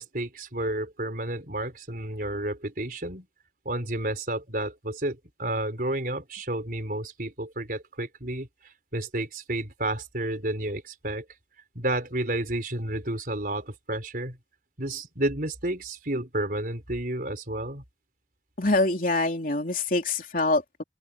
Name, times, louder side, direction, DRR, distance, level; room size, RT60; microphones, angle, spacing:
voice 1, 0.0-3.3 3.6-8.5 8.9-11.2 11.7-14.4 14.8-17.8, right 1 dB, 50° right, 4.8 m, -31 dB
voice 2, 18.6-20.8, left 2 dB, 45° left, 3.4 m, -25 dB
open air
head